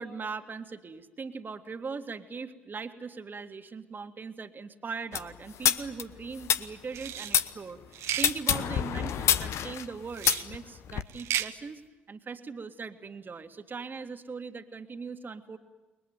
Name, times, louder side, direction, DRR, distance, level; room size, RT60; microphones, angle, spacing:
voice 1, 0.0-7.8 8.2-11.8 12.1-15.6, right 5 dB, 40° right, 7 dB, 2.1 m, -40 dB
sound 1, 5.1-7.5 8.1-11.0, left 9 dB, 60° left, 1.0 m, -27 dB
sound 2, 6.9-7.3 7.9-8.3 10.1-10.5 11.1-11.5, right 11 dB, 65° right, 1.1 m, -33 dB
29.5 x 21.5 x 9.4 m, 1.1 s
figure-of-eight pair, 45°, 5 cm